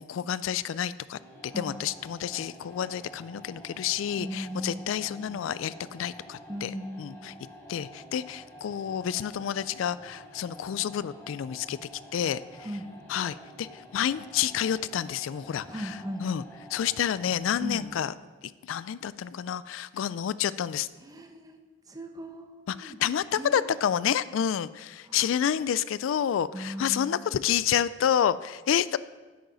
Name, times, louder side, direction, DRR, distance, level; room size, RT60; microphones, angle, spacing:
voice 1, 0.0-6.7 7.0-7.3 7.7-11.8 12.1-12.4 13.1-15.9 16.2-16.4 16.7-18.1 18.7-20.9 22.7-29.0, left 9 dB, 85° left, 18 dB, 0.3 m, -29 dB
sound 1, 1.1-18.2, equal, 15° left, 2.5 m, -49 dB
voice 2, 1.5-1.9 4.2-5.2 6.5-7.3 12.6-12.9 15.6-16.3 17.6-17.9 21.0-21.6 21.9-23.0 23.4-23.6 25.0-25.5 26.5-27.3, equal, 20° right, 6 dB, 0.8 m, -38 dB
10.5 x 8.8 x 4.0 m, 1.3 s
head